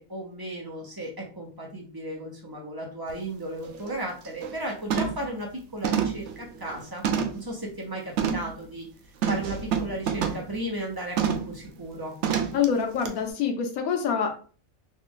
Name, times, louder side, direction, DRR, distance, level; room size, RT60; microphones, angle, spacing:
voice 1, 0.0-7.0 7.3-8.9 9.3-12.2, right 1 dB, 20° right, -2 dB, 0.8 m, -35 dB
sound 1, 3.1-3.2 3.6-3.9 4.3-4.6 4.9-5.3 5.8-7.5 8.2-8.5 9.2-10.5 11.2-11.5 12.2-12.7 13.0-13.1, right 7 dB, 65° right, 0.8 m, -28 dB
voice 2, 12.5-14.3, left 7 dB, 90° left, 3 dB, 1.1 m, -25 dB
3.2 x 2.5 x 3.6 m, 0.39 s
omnidirectional pair, 1.5 m